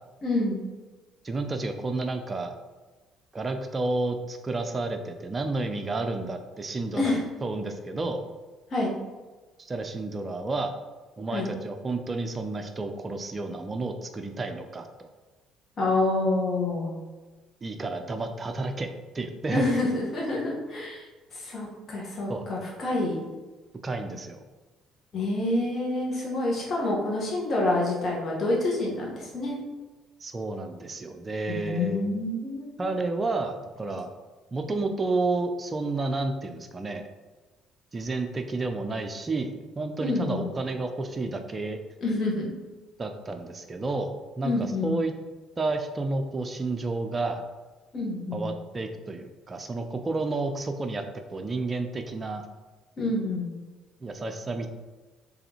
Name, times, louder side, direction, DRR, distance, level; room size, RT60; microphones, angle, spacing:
voice 1, 0.2-0.6 6.9-7.2 8.7-8.9 11.3-11.5 15.8-16.9 19.5-21.1 21.3-23.2 25.1-29.6 31.5-32.7 40.0-40.4 42.0-42.5 44.4-45.0 47.9-48.5 53.0-53.5, left 2 dB, 45° left, -3 dB, 1.3 m, -27 dB
voice 2, 1.2-2.6 3.3-8.2 9.6-10.7 11.2-15.1 17.6-18.9 19.1-19.7 22.3-22.5 23.8-24.4 30.2-32.1 32.8-34.1 34.5-37.0 37.9-41.8 43.0-45.1 45.6-47.4 48.3-51.0 51.3-52.4 54.0-54.7, right 3 dB, 30° right, 6 dB, 0.4 m, -31 dB
3.8 x 3.4 x 3.0 m, 1.3 s
hypercardioid pair, 60°, 0 cm